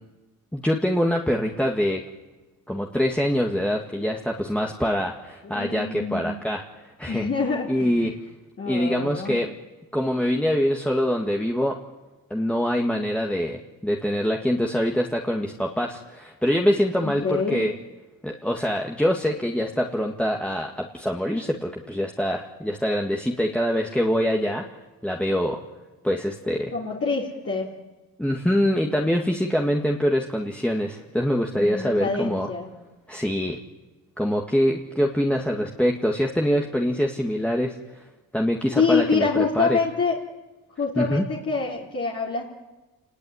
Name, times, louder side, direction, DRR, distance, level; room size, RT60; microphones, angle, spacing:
voice 1, 0.5-2.0 2.7-7.3 7.7-8.1 8.7-9.5 9.9-11.8 12.3-17.7 18.2-24.7 25.0-25.6 26.0-26.7 28.2-32.5 33.1-33.6 34.2-38.0 38.3-39.3 39.6-39.8 41.0-41.2, equal, 5° left, 0 dB, 1.9 m, -24 dB
voice 2, 5.4-6.3 7.1-8.1 8.6-9.4 17.0-17.6 26.7-27.7 31.5-32.7 38.8-40.2 40.8-42.4, left 4 dB, 40° left, -4 dB, 3.5 m, -26 dB
29.0 x 20.0 x 9.7 m, 1.2 s
cardioid pair, 100°, 35 cm